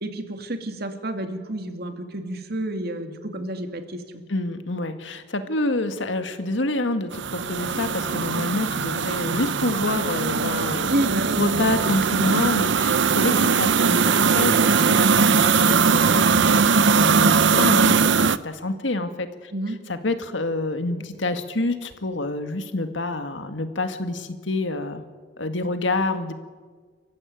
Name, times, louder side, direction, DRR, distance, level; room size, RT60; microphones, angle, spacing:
voice 1, 0.0-4.2 10.9-11.4 19.5-19.8, right 1 dB, 60° right, 6 dB, 2.5 m, -30 dB
voice 2, 4.3-10.9 11.4-19.5 19.9-25.0 25.4-26.3, left 2 dB, 90° left, 8 dB, 1.9 m, -27 dB
sound 1, 7.1-18.4, right 5 dB, 75° right, 0.7 m, -20 dB
28.5 x 15.0 x 9.3 m, 1.5 s
head